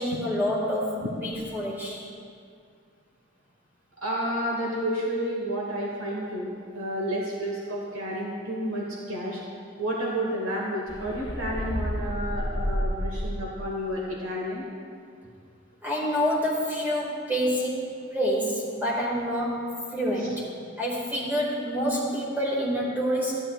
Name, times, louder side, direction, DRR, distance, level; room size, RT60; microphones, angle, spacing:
voice 1, 0.0-2.1 15.8-20.5 20.8-23.4, equal, 10° right, -5 dB, 1.9 m, -27 dB
voice 2, 4.0-9.4 9.8-14.7, equal, 85° right, -3 dB, 1.3 m, -30 dB
sound 1, 10.9-13.7, equal, 20° left, 0.6 m, -30 dB
15.0 x 8.8 x 2.3 m, 2.3 s
head